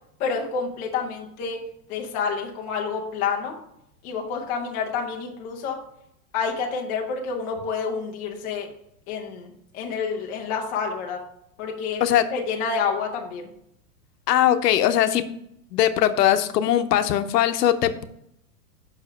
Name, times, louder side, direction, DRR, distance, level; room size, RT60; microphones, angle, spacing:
voice 1, 0.2-1.6 1.9-3.5 4.0-5.8 6.3-8.7 9.1-11.2 11.6-12.0 12.3-13.5, left 5 dB, 15° left, 0 dB, 0.5 m, -28 dB
voice 2, 14.3-15.3 15.7-18.0, left 11 dB, 80° left, 10 dB, 0.9 m, -20 dB
5.8 x 5.0 x 5.6 m, 0.75 s
supercardioid pair, 165°, 47 cm